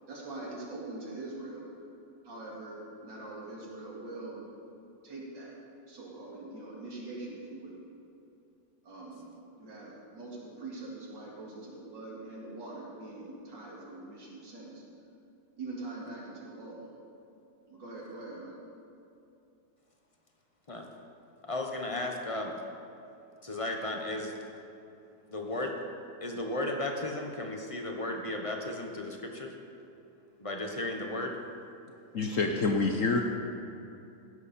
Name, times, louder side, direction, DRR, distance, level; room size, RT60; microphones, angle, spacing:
voice 1, 0.1-1.7 2.2-4.5 5.0-5.5 5.9-7.8 8.8-14.8 15.6-16.8 17.7-18.6, right 2 dB, 65° right, -4 dB, 3.1 m, -43 dB
voice 2, 21.4-22.6 23.4-24.3 25.3-25.8 26.2-29.5 30.4-31.4, left 1 dB, 25° left, 2 dB, 0.8 m, -34 dB
voice 3, 32.1-33.2, left 3 dB, 60° left, 3 dB, 0.9 m, -27 dB
16.0 x 11.0 x 4.3 m, 2.7 s
omnidirectional pair, 2.1 m